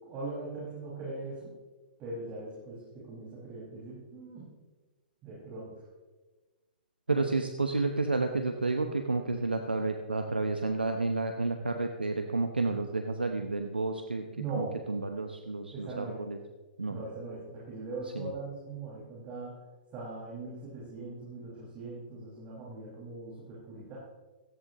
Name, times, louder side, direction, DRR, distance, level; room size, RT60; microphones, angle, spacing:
voice 1, 0.0-1.5 2.0-4.5 5.2-5.7 7.1-7.2 14.4-14.7 15.7-16.2 16.9-19.6 19.9-24.0, right 3 dB, 30° right, -7 dB, 5.6 m, -40 dB
voice 2, 7.1-14.2 14.5-16.4 16.8-17.0 18.1-18.3, right 3 dB, 90° right, 5 dB, 1.0 m, -31 dB
17.5 x 14.5 x 3.1 m, 1.2 s
figure-of-eight pair, 115°, 5 cm